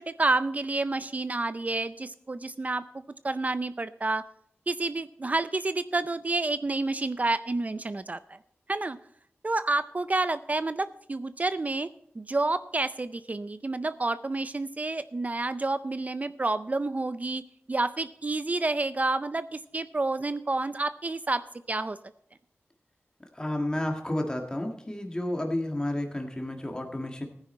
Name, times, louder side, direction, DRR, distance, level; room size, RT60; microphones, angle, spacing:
voice 1, 0.0-2.8 3.2-4.2 4.7-8.4 8.7-9.0 9.4-11.9 12.2-17.4 17.7-21.4 21.7-22.0, right 2 dB, 35° right, 13 dB, 0.5 m, -29 dB
voice 2, 23.3-27.3, left 1 dB, 15° left, 2 dB, 1.7 m, -31 dB
15.0 x 9.7 x 4.3 m, 0.71 s
wide cardioid pair, 90°, 5 cm